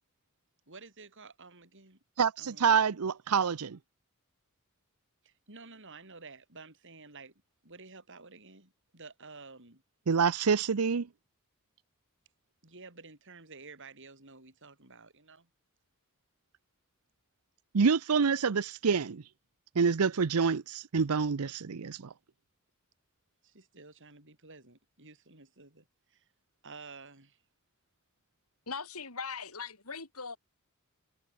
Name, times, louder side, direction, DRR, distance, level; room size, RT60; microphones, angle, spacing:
voice 1, 0.7-2.0 2.4-2.9 5.2-7.3 7.6-9.8 12.6-15.5 23.4-26.2 26.6-27.4, right 4 dB, 60° right, 7.6 m, -51 dB
voice 2, 2.2-3.8 10.1-11.1 17.7-19.2 19.8-22.1, right 6 dB, 85° right, 0.6 m, -27 dB
voice 3, 28.7-30.4, left 5 dB, 80° left, 4.5 m, -40 dB
head